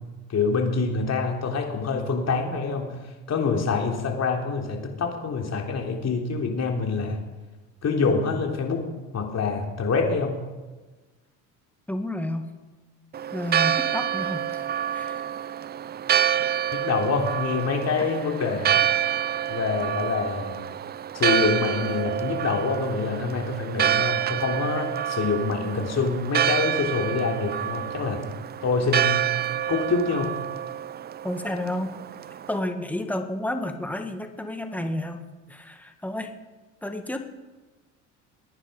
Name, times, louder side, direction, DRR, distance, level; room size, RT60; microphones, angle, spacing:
voice 1, 0.3-3.0 3.3-7.2 7.8-8.8 9.1-10.4 16.7-18.7 19.5-20.5 21.1-28.2 28.6-29.3 29.7-30.4, left 4 dB, 40° left, 2 dB, 3.3 m, -26 dB
voice 2, 11.9-12.5 13.3-14.7 14.9-15.3 31.2-31.9 32.5-35.2 35.5-36.3 36.8-37.2, left 1 dB, 5° left, 6 dB, 1.8 m, -31 dB
Church bell, 13.1-32.6, right 10 dB, 25° right, 0.4 m, -27 dB
21.0 x 9.9 x 5.1 m, 1.2 s
hypercardioid pair, 80°, 41 cm